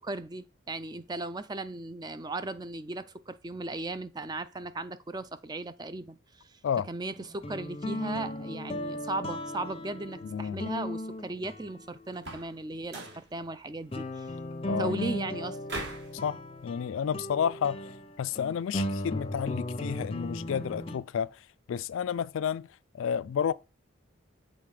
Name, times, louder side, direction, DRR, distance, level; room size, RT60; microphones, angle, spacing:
voice 1, 0.0-6.6 6.9-14.3 14.8-15.6, right 2 dB, 20° right, 0.4 m, -37 dB
sound 1, 7.1-12.4 13.1-13.2 13.9-21.0, left 1 dB, 25° left, 0.6 m, -36 dB
voice 2, 10.2-10.7 14.7-15.1 16.2-17.8 18.2-21.4 21.7-22.7 22.9-23.5, left 7 dB, 70° left, 0.3 m, -31 dB
sound 2, 12.1-12.6 12.9-13.3 15.7-16.1, right 2 dB, 50° right, 2.0 m, -39 dB
7.6 x 4.0 x 4.8 m
head